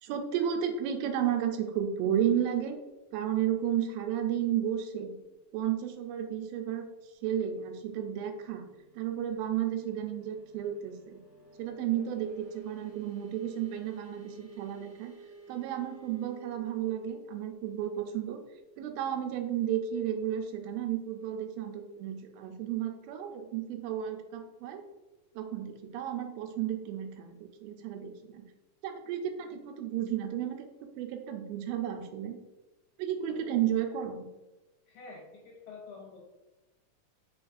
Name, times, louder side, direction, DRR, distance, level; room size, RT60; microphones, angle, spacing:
voice 1, 0.0-2.8 3.1-5.1 5.5-6.9 7.2-8.7 9.0-11.2 11.6-15.1 15.5-18.4 18.8-24.8 25.4-28.5 28.8-30.7 31.0-32.4 33.0-34.3, right 10 dB, 85° right, 5 dB, 2.4 m, -33 dB
sound 1, 7.5-19.9, right 3 dB, 50° right, 1.0 m, -55 dB
voice 2, 34.9-36.3, left 4 dB, 80° left, -1 dB, 1.8 m, -48 dB
5.2 x 3.9 x 2.5 m, 1.1 s
omnidirectional pair, 4.1 m